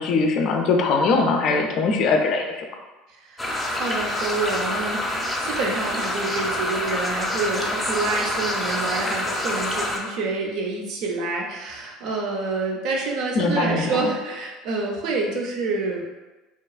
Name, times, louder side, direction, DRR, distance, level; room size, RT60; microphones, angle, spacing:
voice 1, 0.0-2.6 13.3-14.0, left 4 dB, 60° left, 3 dB, 0.4 m, -21 dB
voice 2, 3.2-16.0, right 3 dB, 65° right, 0 dB, 0.6 m, -27 dB
sound 1, 3.4-10.0, left 1 dB, 15° left, 0.6 m, -27 dB
2.9 x 2.3 x 2.4 m, 1.2 s
hypercardioid pair, 85°, 0 cm